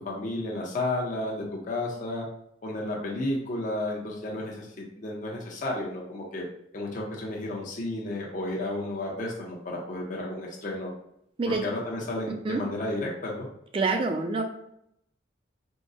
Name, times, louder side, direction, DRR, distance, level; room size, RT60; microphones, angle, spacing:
voice 1, 0.0-2.3 2.6-6.5 6.7-10.9 11.4-13.5, left 1 dB, 40° left, -2 dB, 0.5 m, -32 dB
voice 2, 13.7-14.4, right 3 dB, 25° right, 4 dB, 0.3 m, -26 dB
3.6 x 2.0 x 2.5 m, 0.76 s
head